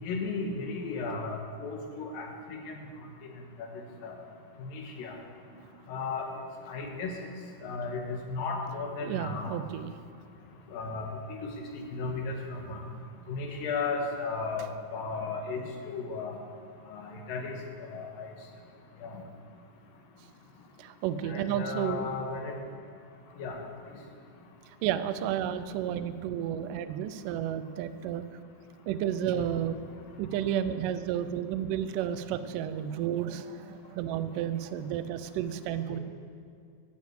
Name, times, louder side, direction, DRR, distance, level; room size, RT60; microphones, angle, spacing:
voice 1, 0.0-2.7 4.0-4.1 4.6-5.2 5.9-6.3 6.7-7.1 7.6-9.6 10.7-11.1 11.9-12.8 13.3-16.4 16.9-17.6 17.9-18.3 19.0-19.2 21.2-22.5 23.4-23.6 29.3-29.4 35.9-36.0, left 4 dB, 70° left, 2 dB, 2.9 m, -35 dB
voice 2, 9.0-9.9 20.8-22.1 24.8-28.2 28.9-29.8 30.2-36.0, right 10 dB, 85° right, 11 dB, 1.9 m, -32 dB
11.5 x 7.3 x 7.9 m, 2.4 s
omnidirectional pair, 4.4 m